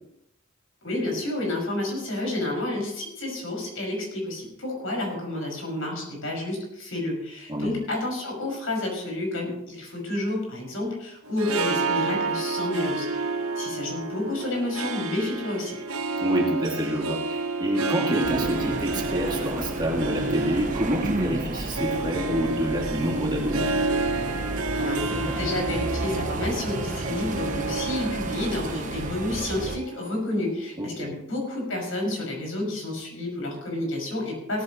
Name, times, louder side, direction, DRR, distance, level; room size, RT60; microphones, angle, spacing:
voice 1, 0.8-13.3 13.6-15.8 24.7-34.6, left 1 dB, 70° left, 0 dB, 5.9 m, -30 dB
Harp, 11.2-30.6, right 3 dB, 80° right, 1.1 m, -30 dB
voice 2, 16.2-23.7 30.8-31.1, equal, 20° right, -1 dB, 2.2 m, -27 dB
sound 1, 18.2-29.8, right 2 dB, 35° right, 0.9 m, -32 dB
17.5 x 13.5 x 3.1 m, 0.81 s
head